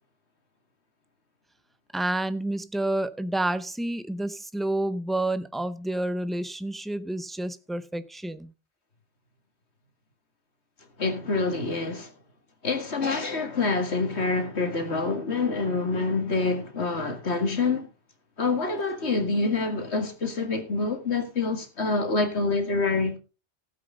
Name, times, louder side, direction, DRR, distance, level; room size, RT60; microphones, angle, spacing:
voice 1, 1.9-8.5, right 1 dB, ahead, 0.4 m, -29 dB
voice 2, 11.0-12.1 12.6-17.9 18.4-23.2, left 3 dB, 70° left, 2.3 m, -26 dB
15.5 x 8.3 x 3.9 m
omnidirectional pair, 1.2 m